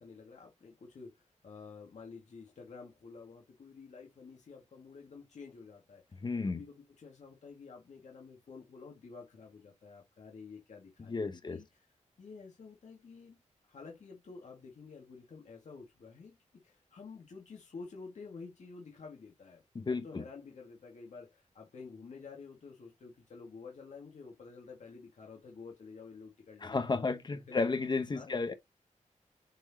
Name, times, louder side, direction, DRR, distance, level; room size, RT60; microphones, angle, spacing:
voice 1, 0.0-6.2 6.5-11.8 12.2-13.4 13.7-16.4 16.6-27.7 28.1-28.5, left 4 dB, 65° left, 1.9 m, -50 dB
voice 2, 6.2-6.6 11.1-11.6 19.7-20.2 26.6-28.5, left 4 dB, 35° left, 0.9 m, -33 dB
7.6 x 4.4 x 2.8 m
wide cardioid pair, 150°, 13 cm